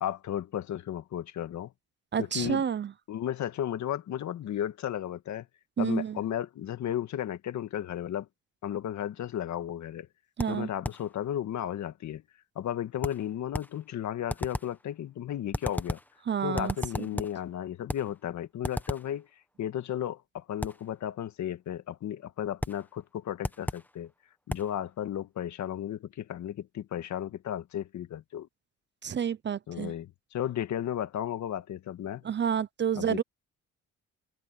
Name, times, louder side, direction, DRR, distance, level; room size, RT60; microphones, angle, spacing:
voice 1, 0.0-1.7 2.2-2.6 3.1-5.5 5.8-8.3 8.6-10.1 10.5-12.2 12.6-16.0 16.4-19.3 19.6-24.1 24.5-28.5 29.7-32.2 33.0-33.2, left 10 dB, 70° left, 1.7 m, -34 dB
voice 2, 2.1-2.9 5.8-6.2 10.4-10.7 16.3-17.1 29.0-29.9 32.2-33.2, right 8 dB, 35° right, 0.7 m, -29 dB
sound 1, 10.4-11.1 13.0-13.8 14.3-14.8 15.5-16.2 16.6-17.4 17.9-18.2 18.6-19.2 20.6-20.9 22.6-22.9 23.4-23.9 24.5-24.8, left 1 dB, 5° left, 1.4 m, -35 dB
cardioid pair, 90°, 30 cm